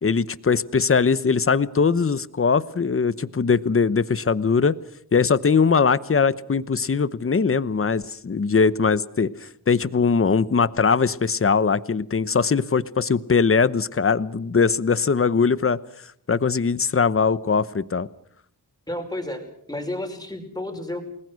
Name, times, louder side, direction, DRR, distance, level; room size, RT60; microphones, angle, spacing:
voice 1, 0.0-4.7 5.1-15.8 16.3-18.1, left 5 dB, 35° left, 17 dB, 0.9 m, -21 dB
voice 2, 18.9-21.0, left 1 dB, 10° left, 4 dB, 5.2 m, -31 dB
29.5 x 20.5 x 6.4 m, 0.67 s
wide cardioid pair, 135°, 39 cm